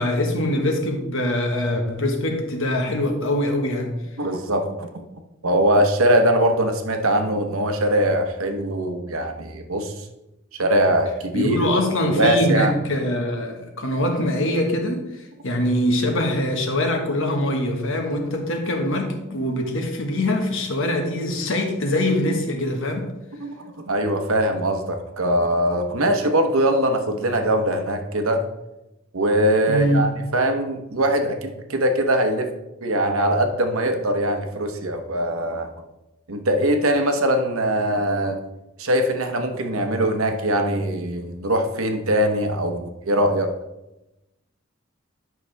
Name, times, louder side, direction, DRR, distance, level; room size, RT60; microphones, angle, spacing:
voice 1, 0.0-4.0 11.3-15.0 15.4-23.1 29.7-30.1, left 1 dB, 65° left, 1.4 m, -23 dB
voice 2, 4.2-5.0 5.4-10.0 10.6-11.6 12.0-12.7 23.4-23.6 23.9-28.4 29.1-32.5 32.8-35.7 36.3-38.4 38.8-43.5, right 1 dB, 70° right, 1.0 m, -22 dB
11.0 x 5.9 x 3.4 m
head